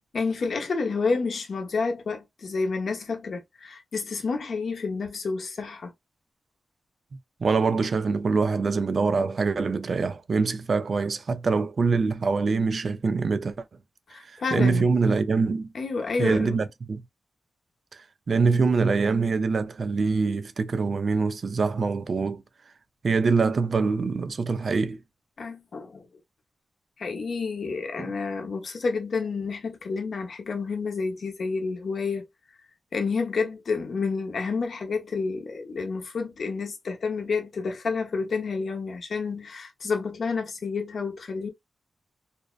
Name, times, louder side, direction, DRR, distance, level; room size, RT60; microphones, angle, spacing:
voice 1, 0.1-5.9 14.1-14.9 15.7-16.6 25.4-26.0 27.0-32.2 32.9-41.5, left 4 dB, 65° left, 0.7 m, -29 dB
voice 2, 7.4-13.6 14.3-15.7 16.2-17.0 18.3-22.4 23.0-25.0, right 4 dB, 55° right, 0.3 m, -24 dB
2.6 x 2.1 x 2.2 m
cardioid pair, 80°, 0 cm